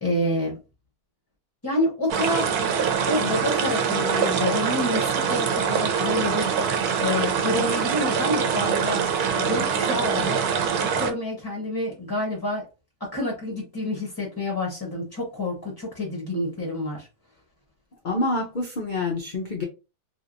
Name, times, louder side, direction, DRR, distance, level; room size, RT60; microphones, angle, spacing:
voice 1, 0.0-0.6 1.6-2.7 3.0-9.0 9.3-10.4 10.8-12.7 13.0-17.1, left 1 dB, 25° left, 0.5 m, -28 dB
sound 1, 2.1-11.1, right 6 dB, 75° right, 1.1 m, -24 dB
voice 2, 18.0-19.6, left 2 dB, 85° left, 0.4 m, -27 dB
3.4 x 2.8 x 2.5 m
omnidirectional pair, 1.7 m